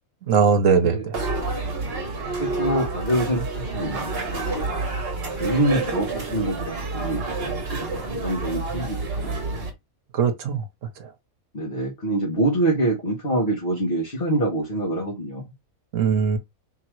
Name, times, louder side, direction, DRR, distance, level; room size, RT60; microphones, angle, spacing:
voice 1, 0.3-1.2 10.1-10.6 11.0-11.1 15.9-16.4, right 6 dB, 65° right, 1.2 m, -20 dB
sound 1, 1.1-9.7, right 3 dB, 45° right, 1.3 m, -29 dB
voice 2, 2.4-4.6 5.4-7.5 7.8-9.7 11.5-15.5, right 1 dB, 40° left, 1.6 m, -26 dB
3.7 x 2.9 x 4.6 m
omnidirectional pair, 1.5 m